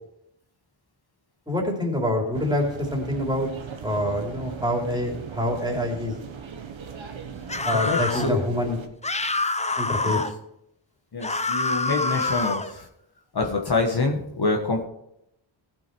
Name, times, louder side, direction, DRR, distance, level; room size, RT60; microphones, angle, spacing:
voice 1, 1.5-2.7 2.9-3.5 3.8-6.1 7.6-8.8 9.8-10.2, left 1 dB, 10° right, 0 dB, 3.4 m, -26 dB
sound 1, 2.3-8.9, right 6 dB, 65° right, 1.4 m, -39 dB
sound 2, 7.5-8.3 9.0-10.3 11.2-12.7, left 3 dB, 15° left, 0.6 m, -26 dB
voice 2, 7.9-8.4 10.0-10.2 11.1-12.9 13.3-14.8, left 3 dB, 50° left, 2 dB, 1.5 m, -26 dB
15.5 x 6.2 x 4.6 m, 0.79 s
cardioid pair, 70°, 50 cm